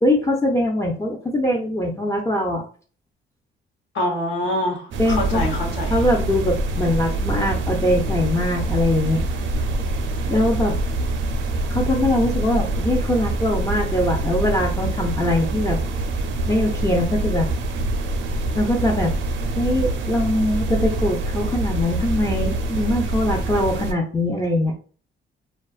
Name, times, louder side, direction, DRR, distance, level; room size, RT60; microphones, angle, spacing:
voice 1, 0.0-2.6 5.0-5.4 5.9-9.2 10.3-10.8 11.7-15.8 16.5-17.5 18.5-19.1 19.6-24.7, left 1 dB, 15° left, 0 dB, 0.4 m, -22 dB
voice 2, 3.9-6.0, left 1 dB, 70° left, -1 dB, 1.0 m, -25 dB
sound 1, 4.9-23.9, right 2 dB, 75° right, 0.5 m, -25 dB
2.5 x 2.3 x 2.3 m, 0.41 s
cardioid pair, 90°, 20 cm